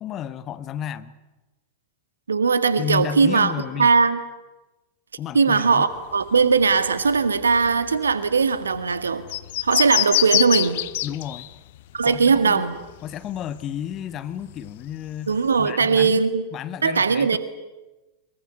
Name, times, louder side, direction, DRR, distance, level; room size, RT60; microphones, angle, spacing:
voice 1, 0.0-1.1 2.8-3.9 5.2-5.8 11.0-11.5 12.1-12.7 13.0-16.2 16.5-17.4, left 9 dB, 30° left, 14 dB, 1.4 m, -32 dB
voice 2, 2.3-3.5 3.8-4.2 5.3-9.2 9.6-10.8 11.9-12.8 15.3-16.5 16.8-17.4, right 5 dB, 75° right, 12 dB, 1.8 m, -19 dB
sound 1, 5.9-13.7 13.9-15.6, left 16 dB, 55° left, 0.9 m, -27 dB
24.0 x 23.0 x 9.5 m, 1.1 s
figure-of-eight pair, 90°, 0 cm